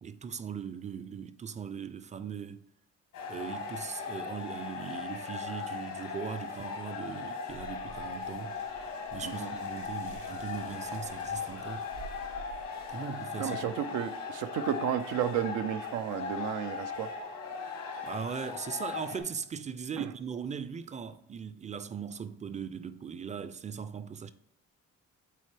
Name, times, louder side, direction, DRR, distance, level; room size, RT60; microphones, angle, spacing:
voice 1, 0.0-2.6 3.3-8.5 9.1-11.9 12.9-13.6 18.0-24.3, right 7 dB, 25° right, 0.4 m, -39 dB
sound 1, 3.1-19.2, left 5 dB, 85° left, 1.5 m, -38 dB
sound 2, 7.5-12.9, right 5 dB, 70° right, 1.7 m, -50 dB
voice 2, 9.2-9.5 12.9-13.0 13.4-17.1 20.0-20.1, right 10 dB, 90° right, 0.5 m, -33 dB
7.7 x 3.9 x 3.3 m
cardioid pair, 90°, 30 cm